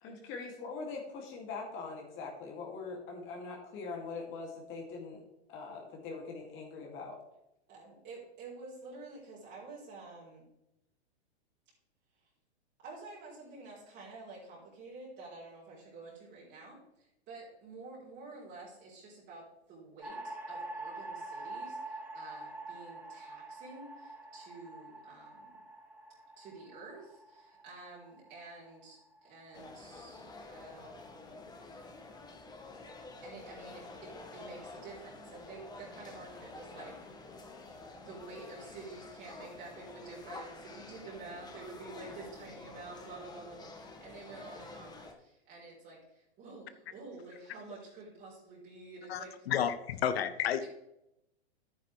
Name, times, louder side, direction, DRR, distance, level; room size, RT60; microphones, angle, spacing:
voice 1, 0.0-5.2 5.5-7.1, left 4 dB, 35° left, -1 dB, 2.6 m, -42 dB
voice 2, 7.7-10.5 12.2-12.3 12.8-25.5 26.4-31.3 33.2-36.9 38.0-49.3 50.6-50.7, right 3 dB, 30° right, -6 dB, 3.7 m, -49 dB
sound 1, 20.0-30.3, right 2 dB, 5° right, 2.8 m, -46 dB
sound 2, 29.5-45.1, left 3 dB, 10° left, 1.4 m, -49 dB
voice 3, 49.1-50.6, left 9 dB, 65° left, 12 dB, 0.9 m, -31 dB
10.5 x 9.4 x 3.3 m, 0.87 s
hypercardioid pair, 120°, 33 cm